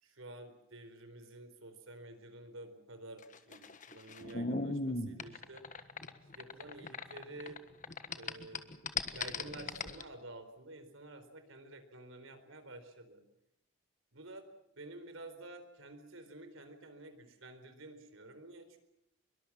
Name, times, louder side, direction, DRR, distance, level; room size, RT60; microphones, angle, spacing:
voice 1, 0.0-5.7 6.3-7.6 8.1-8.8 9.1-13.2 14.1-14.4 14.7-18.8, right 2 dB, 70° right, 9 dB, 4.3 m, -50 dB
sound 1, 3.2-7.6 7.8-10.0, left 3 dB, 35° left, 1.4 m, -38 dB
24.5 x 23.0 x 7.4 m, 0.80 s
head